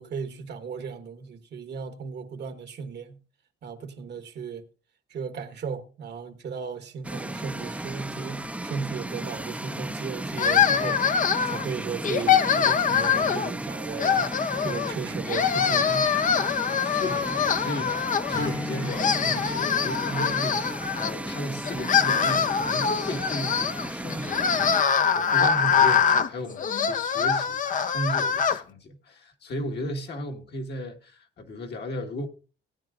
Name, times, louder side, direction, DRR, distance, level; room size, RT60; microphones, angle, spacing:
voice 1, 0.0-3.2 3.6-4.7 5.1-14.3 14.6-16.2, right 6 dB, 60° right, 1.3 m, -36 dB
sound 1, 7.0-24.8, right 1 dB, 5° right, 0.6 m, -35 dB
sound 2, 10.4-11.7 12.0-13.5 14.0-14.9 15.3-18.5 18.8-21.1 21.6-28.6, left 7 dB, 40° left, 0.6 m, -24 dB
voice 2, 16.8-32.3, equal, 60° left, 1.6 m, -35 dB
Strum, 18.3-23.1, left 3 dB, 15° left, 0.9 m, -39 dB
18.5 x 9.2 x 2.4 m
cardioid pair, 90°, 20 cm